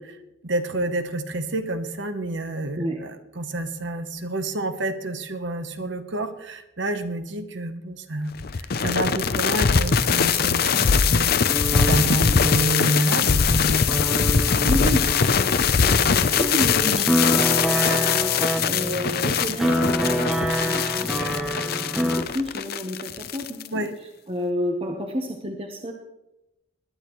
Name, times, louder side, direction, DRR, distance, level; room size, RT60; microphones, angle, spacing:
voice 1, 0.4-14.0 16.8-17.1 23.7-24.0, right 1 dB, 60° right, 9 dB, 1.0 m, -29 dB
sound 1, 8.4-23.7, left 6 dB, 50° left, 0.6 m, -22 dB
sound 2, 11.4-22.2, equal, ahead, 0.9 m, -27 dB
voice 2, 14.6-23.9 24.3-25.9, equal, 30° right, 2 dB, 1.0 m, -31 dB
20.5 x 10.5 x 3.1 m, 0.92 s
head